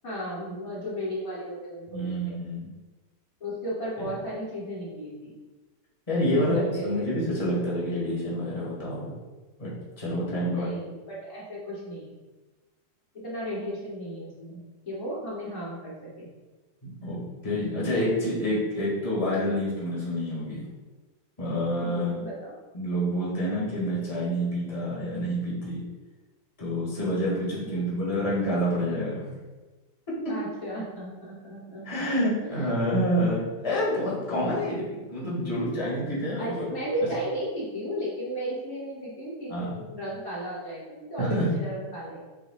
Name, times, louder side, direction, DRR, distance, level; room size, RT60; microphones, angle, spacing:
voice 1, 0.0-2.4 3.4-5.3 6.2-7.1 10.2-12.1 13.2-16.3 21.8-22.5 27.6-27.9 30.3-31.8 32.2-32.7 33.3-33.4 36.4-40.8 41.1-42.2, equal, 55° left, -9 dB, 3.2 m, -35 dB
voice 2, 1.9-2.7 6.1-6.6 6.8-9.1 9.6-9.7 10.0-10.7 16.8-20.6 21.4-22.2 22.7-25.8 26.6-29.4 31.8-34.8 35.1-36.7 39.5-39.8 41.2-41.5, equal, 20° left, -7 dB, 2.3 m, -28 dB
7.9 x 7.8 x 2.5 m, 1.2 s
omnidirectional pair, 1.8 m